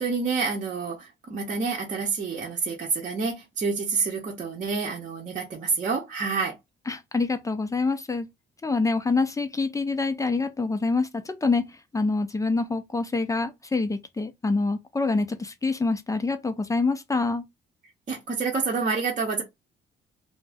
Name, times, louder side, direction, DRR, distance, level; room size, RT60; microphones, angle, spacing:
voice 1, 0.0-6.6 18.1-19.4, right 4 dB, 40° right, 0.8 m, -28 dB
voice 2, 6.9-8.3 8.6-17.4, left 3 dB, 15° left, 0.5 m, -26 dB
2.4 x 2.1 x 3.4 m
cardioid pair, 90°, 20 cm